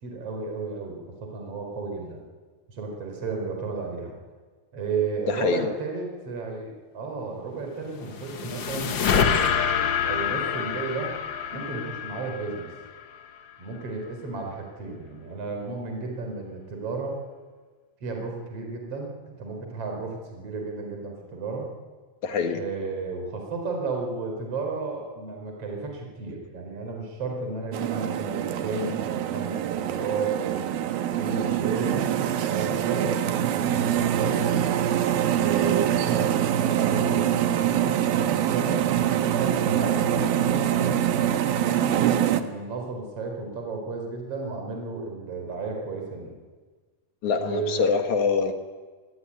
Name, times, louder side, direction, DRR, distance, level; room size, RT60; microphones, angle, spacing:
voice 1, 0.0-2.2 2.7-4.1 4.7-11.1 11.5-12.7 13.6-17.2 18.0-21.7 22.5-30.7 31.1-34.4 35.3-37.3 37.6-41.0 41.6-46.4 47.4-47.9, right 4 dB, 40° right, 2 dB, 5.2 m, -33 dB
voice 2, 5.3-5.7 22.2-22.6 47.2-48.5, left 5 dB, 60° left, 6 dB, 2.8 m, -24 dB
sound 1, 7.8-13.2, left 7 dB, 80° left, 1.0 m, -27 dB
sound 2, 27.7-42.4, right 10 dB, 85° right, 3.1 m, -24 dB
26.5 x 19.0 x 9.9 m, 1.4 s
omnidirectional pair, 4.2 m